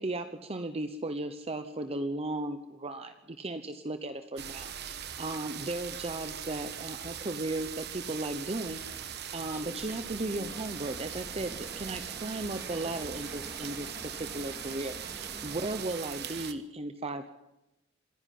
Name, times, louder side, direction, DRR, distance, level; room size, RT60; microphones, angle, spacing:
voice 1, 0.0-17.3, right 2 dB, 30° right, 8 dB, 0.9 m, -36 dB
sound 1, 4.4-16.5, right 9 dB, 55° right, 1.3 m, -40 dB
sound 2, 8.5-15.9, equal, 10° right, 2.6 m, -48 dB
26.5 x 10.5 x 9.4 m, 0.96 s
head